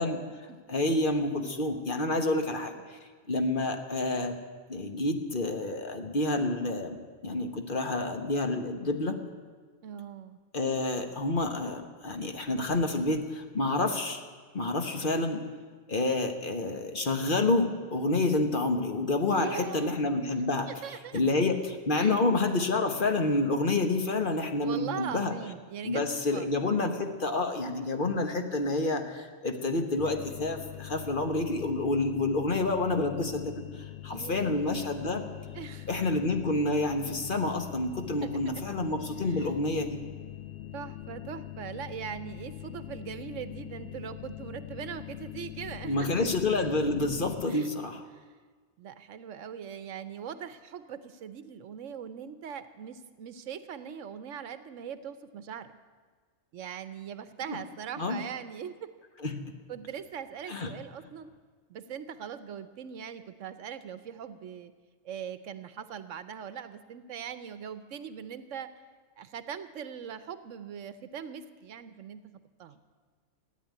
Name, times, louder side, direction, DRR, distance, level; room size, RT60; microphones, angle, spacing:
voice 1, 0.0-0.8 2.1-2.4 9.8-10.4 19.3-20.0 20.7-21.2 21.9-22.1 24.6-26.0 26.3-26.5 34.1-34.8 35.5-36.1 38.1-38.8 39.2-39.5 40.7-46.3 47.5-47.7 48.1-48.2 48.8-55.7 56.5-58.9 59.7-61.3 61.7-64.7 65.0-68.7 69.2-72.2 72.6-72.8, right 8 dB, 90° right, 12 dB, 1.2 m, -41 dB
voice 2, 0.7-3.0 3.3-4.4 4.7-9.1 10.5-14.2 14.5-15.4 15.9-20.7 21.1-25.3 25.8-35.2 35.9-40.0 45.8-48.0 57.5-57.6 58.0-58.2 59.2-59.4 60.5-60.7, left 2 dB, 45° left, 5 dB, 1.4 m, -28 dB
sound 1, 30.0-47.4, left 13 dB, 65° left, 1.0 m, -43 dB
14.5 x 9.6 x 9.4 m, 1.5 s
omnidirectional pair, 1.3 m